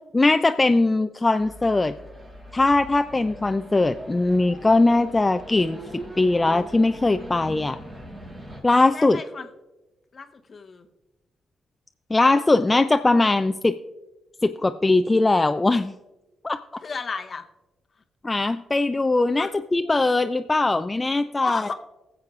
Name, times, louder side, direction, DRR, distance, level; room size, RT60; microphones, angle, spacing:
voice 1, 0.1-1.9 2.5-5.8 6.2-7.8 8.6-9.2 12.1-13.8 14.4-15.9 16.4-16.6 18.2-21.6, left 2 dB, 25° left, 8 dB, 0.4 m, -20 dB
sound 1, 1.4-8.6, equal, 40° right, 3.8 m, -41 dB
voice 2, 8.9-9.5 10.1-10.9 16.8-17.4 19.4-19.5 21.4-21.7, left 4 dB, 50° left, 6 dB, 0.8 m, -32 dB
20.5 x 7.0 x 2.4 m, 1.1 s
hypercardioid pair, 45°, 0 cm